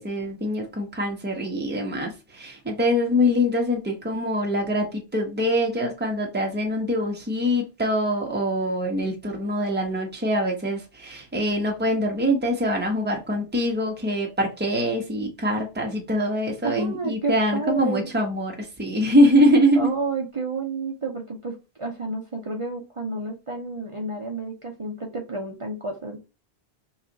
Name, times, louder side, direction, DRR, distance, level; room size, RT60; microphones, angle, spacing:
voice 1, 0.0-19.9, equal, 10° right, 0.9 m, -24 dB
voice 2, 16.6-18.1 19.8-26.2, right 3 dB, 35° right, 0.6 m, -31 dB
3.1 x 2.4 x 3.8 m
omnidirectional pair, 1.1 m